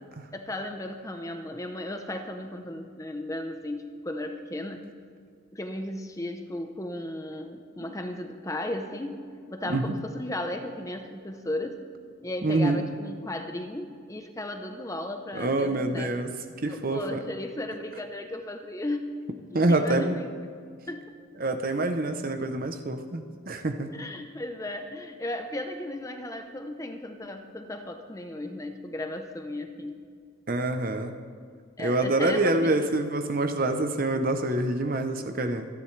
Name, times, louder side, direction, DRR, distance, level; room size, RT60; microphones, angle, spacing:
voice 1, 0.3-4.8 5.5-9.2 9.5-11.8 12.2-16.1 16.7-19.1 19.5-20.3 20.9-21.1 23.9-30.0 31.8-32.7, left 1 dB, 15° left, 5 dB, 0.7 m, -35 dB
voice 2, 12.4-12.8 15.3-17.2 19.5-20.2 21.4-23.9 30.5-31.2 31.8-35.7, right 2 dB, 40° right, 7 dB, 0.7 m, -26 dB
26.5 x 10.5 x 3.3 m, 2.1 s
head